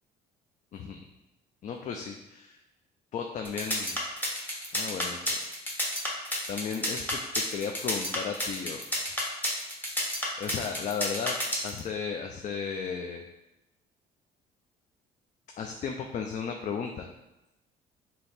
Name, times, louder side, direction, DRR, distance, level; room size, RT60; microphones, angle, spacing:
voice 1, 0.7-1.0 1.6-2.6 3.1-4.0 4.7-5.4 6.5-8.8 10.4-11.4 11.6-13.2 15.6-17.1, left 6 dB, 45° left, 3 dB, 0.4 m, -35 dB
sound 1, 3.4-11.8, left 1 dB, 10° left, 0.9 m, -30 dB
3.3 x 2.8 x 4.2 m, 0.94 s
cardioid pair, 110°, 17 cm